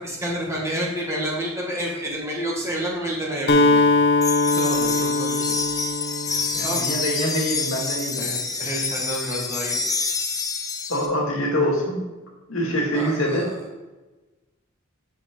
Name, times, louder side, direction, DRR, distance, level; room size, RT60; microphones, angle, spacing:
voice 1, 0.0-3.9 4.4-5.5 6.3-6.9 8.2-9.8 12.9-13.6, equal, 15° right, -3 dB, 1.6 m, -29 dB
Acoustic guitar, 3.5-7.3, left 2 dB, 50° left, 0.9 m, -21 dB
sound 1, 4.2-11.1, left 4 dB, 15° left, 0.5 m, -27 dB
voice 2, 6.5-8.3 10.9-12.0 12.5-13.5, equal, 65° left, -1 dB, 2.0 m, -24 dB
7.8 x 6.3 x 3.8 m, 1.1 s
head